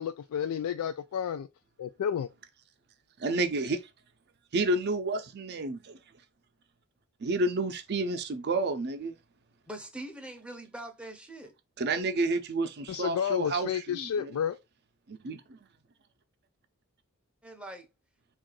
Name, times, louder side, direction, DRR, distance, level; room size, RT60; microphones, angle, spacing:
voice 1, 0.0-1.5 1.8-2.3 12.9-14.6, left 8 dB, 85° left, 0.3 m, -31 dB
voice 2, 3.2-3.8 4.5-6.0 7.2-9.2 11.8-14.3 15.1-15.6, right 2 dB, 50° right, 0.5 m, -30 dB
voice 3, 9.7-11.5 17.4-17.9, right 1 dB, 5° right, 0.6 m, -43 dB
3.6 x 2.4 x 3.7 m
head